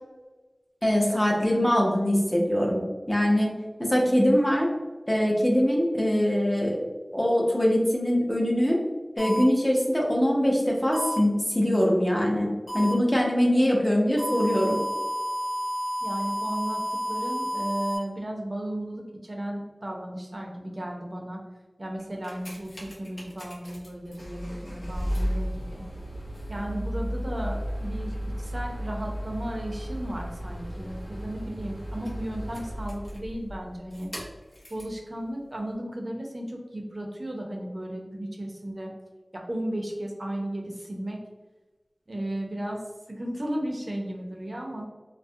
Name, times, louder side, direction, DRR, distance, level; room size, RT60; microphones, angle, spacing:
voice 1, 0.8-3.5 3.8-4.7 5.1-6.8 7.1-8.8 9.2-12.5 12.7-14.8, equal, 20° left, -2 dB, 0.6 m, -23 dB
sound 1, 9.2-9.4 10.9-11.2 12.7-12.9 14.2-18.0, equal, 80° left, 1.1 m, -30 dB
voice 2, 16.0-21.4 21.8-25.8 26.5-34.1 34.7-38.9 39.3-41.2 42.1-42.8 43.1-44.8, right 1 dB, 50° right, 0 dB, 0.5 m, -35 dB
sound 2, 22.0-35.0 35.7-35.8, equal, 65° left, 0.7 m, -35 dB
2.3 x 2.0 x 2.6 m, 1.2 s
wide cardioid pair, 55°, 0 cm